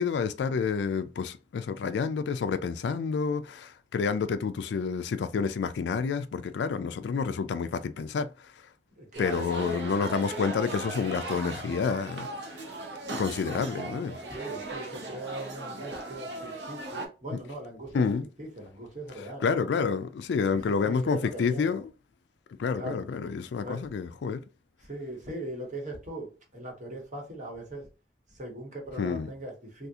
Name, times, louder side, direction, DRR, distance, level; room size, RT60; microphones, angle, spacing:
voice 1, 0.0-8.3 9.2-12.3 13.1-14.2 17.9-18.3 19.4-21.8 22.6-24.4 29.0-29.3, left 5 dB, 70° left, 0.3 m, -29 dB
voice 2, 8.9-9.5 14.3-16.3 16.7-18.1 18.4-19.4 20.4-21.8 22.7-23.1 23.6-23.8 24.8-26.3 26.5-27.9 28.3-29.9, right 1 dB, 45° right, 1.2 m, -40 dB
sound 1, 9.1-17.1, right 2 dB, 70° right, 0.8 m, -38 dB
3.5 x 2.4 x 2.7 m
head